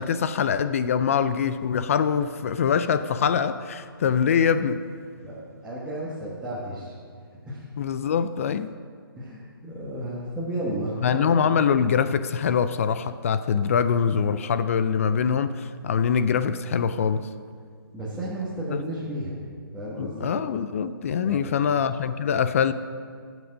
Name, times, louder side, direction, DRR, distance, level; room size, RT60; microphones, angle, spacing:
voice 1, 0.0-4.9 7.8-8.7 11.0-17.3 18.7-18.8 20.0-22.7, left 7 dB, 35° left, 13 dB, 0.4 m, -24 dB
voice 2, 5.2-6.9 7.5-7.6 9.2-11.5 17.9-19.4 19.7-20.3 21.2-21.7, right 1 dB, 5° right, -10 dB, 1.3 m, -33 dB
12.5 x 6.1 x 6.4 m, 2.1 s
hypercardioid pair, 155°, 13 cm